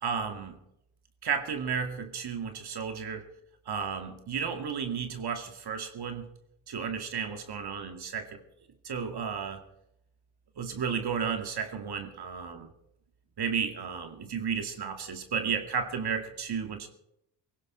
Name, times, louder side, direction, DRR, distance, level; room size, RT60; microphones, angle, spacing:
voice 1, 0.0-0.6 1.2-3.3 3.7-6.3 6.7-8.4 8.8-9.6 10.6-12.7 13.4-16.9, right 6 dB, 55° right, 6 dB, 2.3 m, -33 dB
17.5 x 16.0 x 4.3 m, 0.79 s
supercardioid pair, 70°, 48 cm